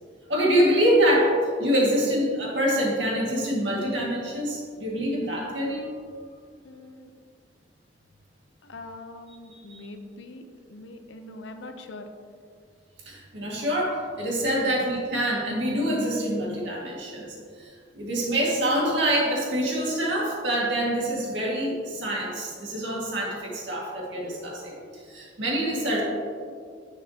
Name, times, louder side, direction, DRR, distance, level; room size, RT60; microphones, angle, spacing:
voice 1, 0.3-5.9 13.1-24.8 25.1-26.0, equal, 65° right, -3 dB, 1.9 m, -25 dB
voice 2, 6.6-7.1 8.6-10.4 10.7-12.1 14.6-14.9 25.9-26.0, left 2 dB, 70° left, 7 dB, 0.7 m, -42 dB
9.5 x 7.1 x 2.8 m, 2.1 s
head